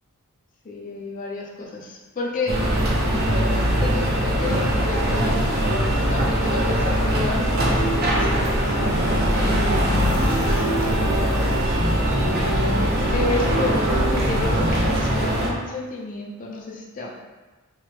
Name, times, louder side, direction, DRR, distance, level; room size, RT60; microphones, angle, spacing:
voice 1, 0.6-2.6 3.8-5.4 6.1-8.5 9.3-10.6 10.9-11.0 13.1-17.1, left 2 dB, 35° left, -2 dB, 0.4 m, -31 dB
sound 1, 2.5-15.5, equal, 45° right, 0.5 m, -21 dB
sound 2, 6.0-15.0, right 1 dB, ahead, 0.7 m, -31 dB
3.0 x 2.0 x 3.2 m, 1.2 s
head